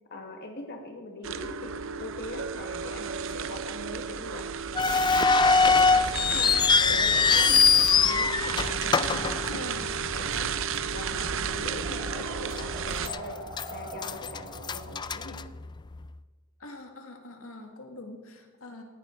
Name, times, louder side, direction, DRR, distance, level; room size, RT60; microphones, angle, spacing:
voice 1, 0.1-4.5 4.9-6.6 6.9-9.7 10.1-10.6 10.9-13.4 13.7-15.4, left 1 dB, 55° left, 3 dB, 1.7 m, -41 dB
sound 1, 1.2-13.1, right 6 dB, 65° right, 0.6 m, -33 dB
sound 2, 4.7-10.1 10.4-10.5 11.2-11.4 11.9-12.0 12.6-13.2 13.5-16.0, left 5 dB, 20° left, 0.3 m, -23 dB
sound 3, 5.4-15.2, right 1 dB, 25° right, 3.8 m, -46 dB
voice 2, 9.5-10.0 16.6-18.8, left 2 dB, 85° left, 3 dB, 1.8 m, -43 dB
18.0 x 10.5 x 4.4 m, 1.3 s
head